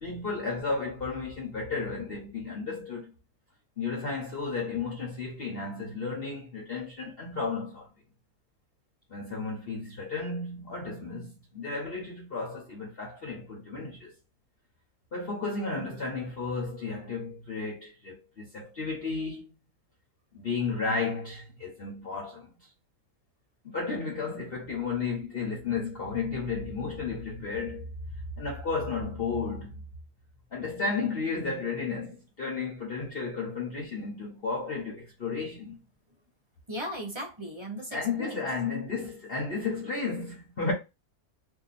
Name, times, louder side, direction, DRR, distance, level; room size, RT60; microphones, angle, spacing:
voice 1, 0.0-3.1 3.8-7.9 9.1-14.1 15.1-19.5 20.3-22.5 23.6-27.9 28.4-29.7 30.5-35.8 37.9-40.7, left 4 dB, 45° left, 1.0 m, -33 dB
voice 2, 36.7-38.5, equal, 25° right, 0.7 m, -37 dB
2.8 x 2.5 x 4.0 m
omnidirectional pair, 1.6 m